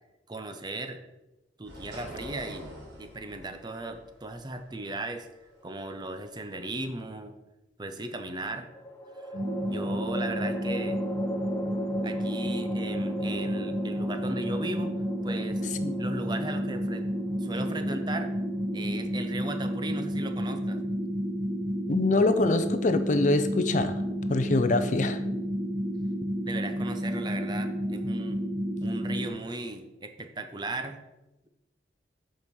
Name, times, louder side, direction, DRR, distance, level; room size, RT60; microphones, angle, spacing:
voice 1, 0.3-1.0 1.6-2.7 3.0-5.3 5.6-7.4 7.8-8.7 9.2-9.3 9.7-11.0 12.0-14.9 15.2-15.6 16.0-17.1 17.4-18.3 18.7-20.8 26.4-28.4 28.8-31.0, right 2 dB, 25° right, 7 dB, 0.7 m, -37 dB
sound 1, 1.7-6.9, right 1 dB, 90° right, 3.1 m, -46 dB
sound 2, 5.6-6.4 8.7-20.0, equal, 15° left, 0.8 m, -40 dB
sound 3, 9.3-29.3, equal, 45° right, 1.8 m, -31 dB
voice 2, 21.9-24.0 24.3-25.2, left 2 dB, 40° left, 10 dB, 0.5 m, -24 dB
8.1 x 4.9 x 5.3 m, 0.96 s
head